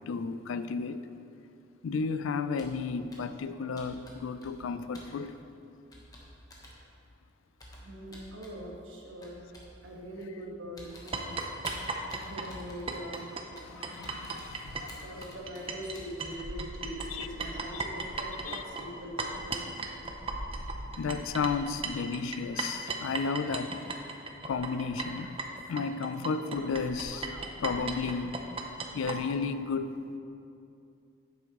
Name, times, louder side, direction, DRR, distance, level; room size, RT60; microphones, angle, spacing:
voice 1, 0.1-1.1 1.8-5.3 13.7-15.2 17.1-17.3 17.7-17.9 18.5-18.6 20.9-23.7 24.4-25.4 25.7-28.4 28.9-30.2, left 5 dB, 75° left, 0.4 m, -33 dB
Computer keyboard, 2.6-2.8 3.1-3.4 3.8-4.7 4.9-5.2 5.9-6.8 7.6-8.6 9.2-9.8 10.2-10.4 10.8-16.4, left 1 dB, 20° left, 1.0 m, -50 dB
voice 2, 7.8-9.4 9.8-11.3 12.2-14.2 14.8-21.0, equal, 65° right, 1.4 m, -43 dB
sound 1, 11.1-15.9 16.2-29.2, right 3 dB, 25° right, 0.5 m, -36 dB
Female speech woman speaking / Yell, 22.8-24.2 24.6-26.2 26.5-27.6, right 3 dB, 85° right, 0.7 m, -55 dB
9.9 x 8.6 x 3.0 m
head